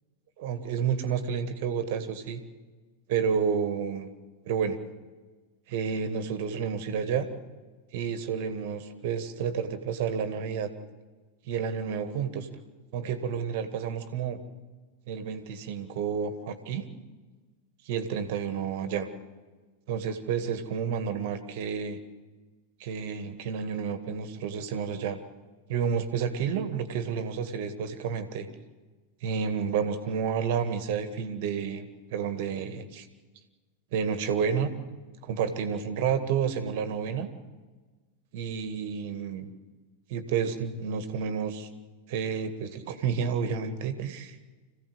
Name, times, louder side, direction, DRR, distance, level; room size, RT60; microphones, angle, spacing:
voice 1, 0.4-2.4 3.1-4.1 4.5-4.8 5.7-7.3 7.9-10.7 11.5-12.5 12.9-14.4 15.1-16.9 17.9-19.1 19.9-22.0 22.8-25.2 25.7-28.5 29.2-33.1 33.9-34.7 35.2-37.3 38.3-39.5 40.1-41.7 42.1-44.4, right 7 dB, 50° right, 9 dB, 1.9 m, -30 dB
26.0 x 16.0 x 8.0 m, 1.3 s
figure-of-eight pair, 90°, 0 cm